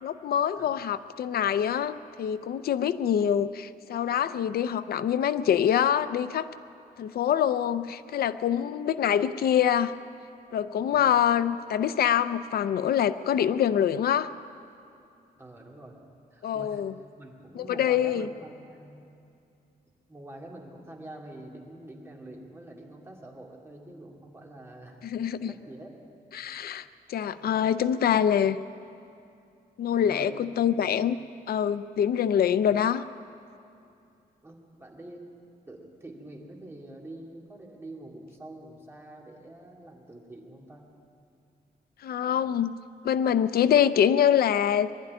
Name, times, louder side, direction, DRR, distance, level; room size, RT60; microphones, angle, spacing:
voice 1, 0.0-6.5 7.0-9.9 10.5-14.3 16.4-16.9 17.6-18.3 25.0-25.5 26.3-28.6 29.8-31.2 31.5-33.0 42.0-42.8 43.0-44.9, left 9 dB, 80° left, 13 dB, 0.6 m, -25 dB
voice 2, 10.9-11.3 15.4-15.9 16.3-16.8 17.2-19.0 20.1-25.0 25.5-25.9 27.2-27.4 30.0-31.0 34.4-35.3 35.7-40.9, right 1 dB, 15° right, -2 dB, 2.7 m, -46 dB
22.5 x 12.0 x 9.9 m, 2.6 s
wide cardioid pair, 165°, 16 cm